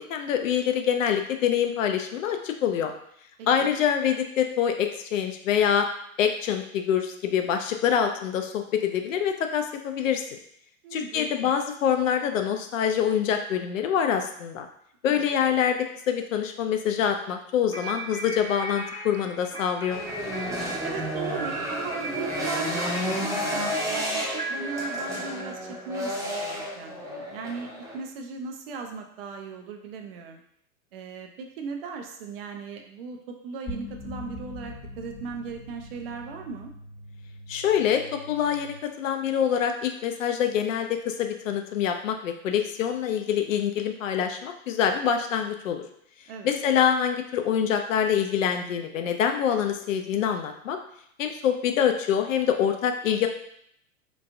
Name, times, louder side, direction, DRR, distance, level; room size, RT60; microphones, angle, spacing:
voice 1, 0.1-2.9 3.5-5.9 6.2-10.4 10.9-14.7 15.0-15.8 16.1-20.0 37.5-38.0 38.3-45.8 46.4-50.8 51.2-53.3, left 8 dB, 65° left, 5 dB, 0.5 m, -25 dB
voice 2, 3.4-3.8 10.8-11.5 15.0-15.2 20.8-27.7 27.9-30.4 30.9-36.7 46.3-46.5, right 5 dB, 45° right, 3 dB, 0.5 m, -38 dB
sound 1, 17.7-26.0, right 1 dB, 85° right, 1.3 m, -37 dB
sound 2, 19.9-28.0, equal, 5° right, 0.7 m, -31 dB
sound 3, 33.7-38.8, left 1 dB, 30° left, 0.8 m, -42 dB
3.0 x 2.3 x 2.6 m, 0.69 s
figure-of-eight pair, 100°, 42 cm